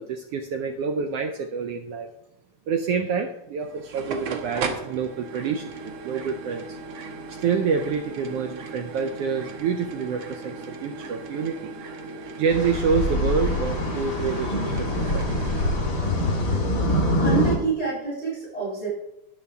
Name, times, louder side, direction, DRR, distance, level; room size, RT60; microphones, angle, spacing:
voice 1, 0.0-2.1 2.7-6.8 7.3-11.7 12.4-15.3 15.7-15.8, right 6 dB, 90° right, 5 dB, 1.3 m, -27 dB
sound 1, 3.6-15.7, right 4 dB, 60° right, 1.4 m, -37 dB
sound 2, 12.5-17.6, left 1 dB, 40° left, 2.6 m, -24 dB
voice 2, 17.2-18.9, right 4 dB, 20° left, -8 dB, 4.9 m, -27 dB
12.5 x 9.6 x 3.5 m, 0.87 s
omnidirectional pair, 3.5 m